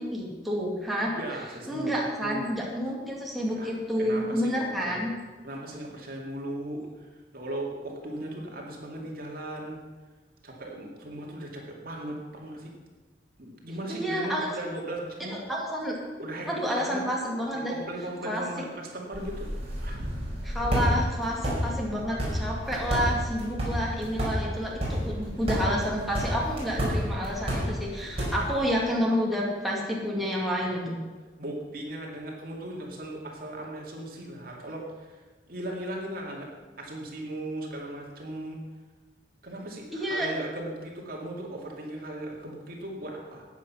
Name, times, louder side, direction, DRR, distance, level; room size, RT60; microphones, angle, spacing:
voice 1, 0.0-1.1 1.7-5.1 13.9-14.5 15.5-16.0 16.5-17.7 18.2-18.6 20.4-31.0 39.9-40.3, equal, ahead, -4 dB, 2.4 m, -29 dB
voice 2, 1.0-2.5 3.4-5.1 5.4-7.1 7.3-9.8 10.4-12.7 13.4-15.4 16.2-16.5 16.7-17.0 17.5-19.5 19.8-20.0 31.4-35.2 35.5-36.5 36.8-38.6 39.4-43.4, right 1 dB, 55° right, -1 dB, 2.4 m, -37 dB
sound 1, 19.1-28.7, equal, 35° right, 5.2 m, -30 dB
13.5 x 9.3 x 5.8 m, 1.3 s
head